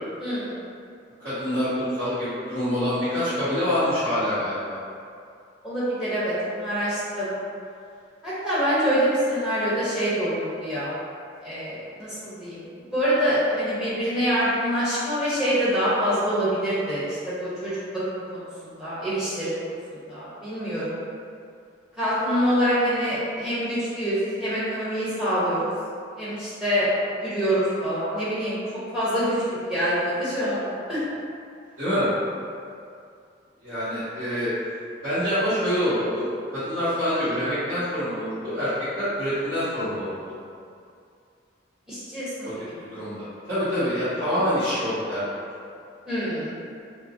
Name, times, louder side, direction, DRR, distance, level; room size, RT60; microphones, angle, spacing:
voice 1, 0.2-0.6 5.6-7.4 8.2-10.9 11.4-12.6 12.9-17.8 18.1-20.9 22.0-25.7 26.2-26.9 27.2-28.6 28.9-29.3 29.6-31.0 41.9-42.5 46.1-46.5, equal, 5° right, -11 dB, 0.8 m, -25 dB
voice 2, 1.2-4.8 31.8-32.1 33.6-34.5 35.0-40.3 42.4-42.5 42.8-45.2, equal, 50° right, -17 dB, 1.5 m, -26 dB
4.8 x 2.0 x 2.6 m, 2.4 s
head